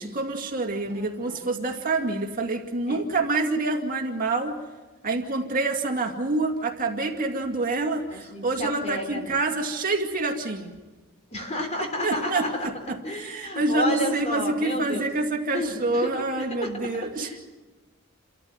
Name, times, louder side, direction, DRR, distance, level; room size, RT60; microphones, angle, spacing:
voice 1, 0.0-4.6 5.0-10.7 12.0-17.3, right 2 dB, 40° right, 2 dB, 2.3 m, -27 dB
voice 2, 0.9-1.4 2.9-3.0 8.1-9.4 11.3-15.1 15.5-16.1 16.4-16.8 17.2-17.4, left 1 dB, 30° left, 4 dB, 3.7 m, -32 dB
29.0 x 13.5 x 9.4 m, 1.2 s
head